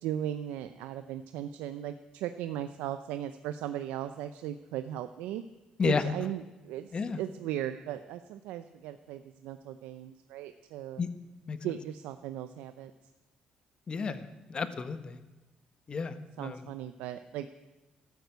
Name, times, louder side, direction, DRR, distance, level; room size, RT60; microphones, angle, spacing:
voice 1, 0.0-5.4 5.8-11.0 11.6-12.9 16.1-17.5, right 11 dB, 90° right, 10 dB, 0.6 m, -37 dB
voice 2, 13.9-15.2 15.9-16.7, left 5 dB, 40° left, 11 dB, 1.4 m, -32 dB
13.0 x 12.5 x 8.1 m, 1.1 s
cardioid pair, 80°, 2 cm